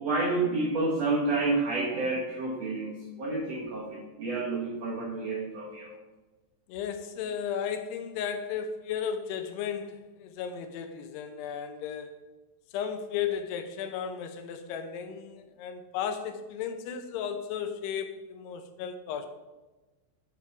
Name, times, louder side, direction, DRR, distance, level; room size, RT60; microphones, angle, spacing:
voice 1, 0.0-6.0, right 3 dB, 85° right, -4 dB, 1.4 m, -29 dB
voice 2, 6.7-12.1 12.7-19.3, left 8 dB, 80° left, 7 dB, 2.8 m, -34 dB
9.5 x 5.6 x 4.8 m, 1.1 s
omnidirectional pair, 4.9 m